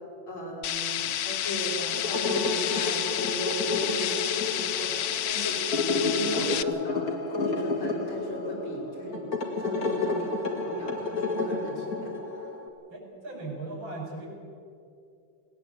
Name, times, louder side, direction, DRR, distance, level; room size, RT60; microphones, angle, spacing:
voice 1, 0.3-9.3 9.6-12.1 12.4-12.5, equal, 90° left, -4 dB, 6.6 m, -36 dB
sound 1, 0.6-6.6, left 11 dB, 65° left, 1.0 m, -30 dB
sound 2, 1.9-12.7, left 3 dB, 45° left, 2.2 m, -31 dB
voice 2, 12.9-14.3, right 2 dB, 75° right, -1 dB, 6.2 m, -38 dB
19.5 x 19.0 x 8.2 m, 2.5 s
omnidirectional pair, 2.2 m